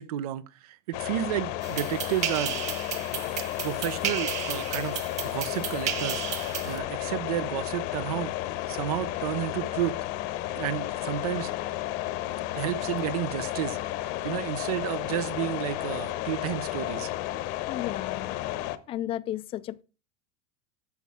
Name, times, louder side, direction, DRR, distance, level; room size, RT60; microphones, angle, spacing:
voice 1, 0.0-2.6 3.6-5.0 5.2-8.3 8.7-9.9 10.5-11.5 12.5-17.1, right 13 dB, 90° right, 0.9 m, -32 dB
sound 1, 0.9-18.8, left 15 dB, 55° left, 0.9 m, -33 dB
sound 2, 1.6-6.8, right 9 dB, 35° right, 1.5 m, -33 dB
voice 2, 17.7-18.4 18.9-19.8, left 13 dB, 30° left, 0.3 m, -33 dB
10.5 x 7.2 x 3.6 m
supercardioid pair, 145°, 19 cm